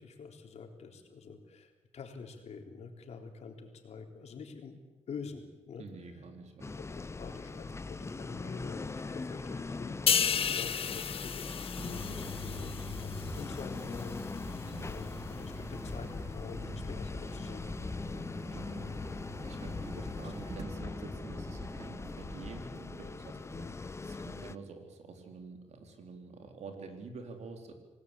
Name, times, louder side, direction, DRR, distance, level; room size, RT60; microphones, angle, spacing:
voice 1, 0.0-4.8 5.1-5.9 6.8-18.4 20.0-20.1 23.5-23.7, left 5 dB, 70° left, 4 dB, 3.7 m, -47 dB
voice 2, 5.8-6.8 14.6-14.9 18.5-19.1 19.4-27.7, right 4 dB, 75° right, 4 dB, 4.3 m, -47 dB
sound 1, 6.6-24.6, left 3 dB, 25° left, 0.7 m, -41 dB
sound 2, 10.1-13.6 14.0-14.2, left 7 dB, 55° left, 0.7 m, -32 dB
sound 3, 11.8-22.6, equal, 30° right, 2.0 m, -45 dB
26.5 x 19.0 x 8.5 m, 1.1 s
wide cardioid pair, 115°, 12 cm